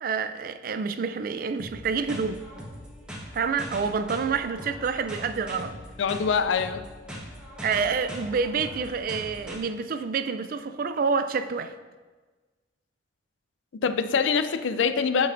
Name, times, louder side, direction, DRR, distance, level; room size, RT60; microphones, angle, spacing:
voice 1, 0.0-2.4 3.3-5.8 7.6-11.7, right 5 dB, 50° right, 10 dB, 0.4 m, -28 dB
sound 1, 1.6-9.6, equal, 5° right, 1.2 m, -41 dB
voice 2, 6.0-6.8 13.8-15.3, left 6 dB, 85° left, 10 dB, 0.4 m, -24 dB
8.8 x 6.6 x 2.6 m, 1.3 s
head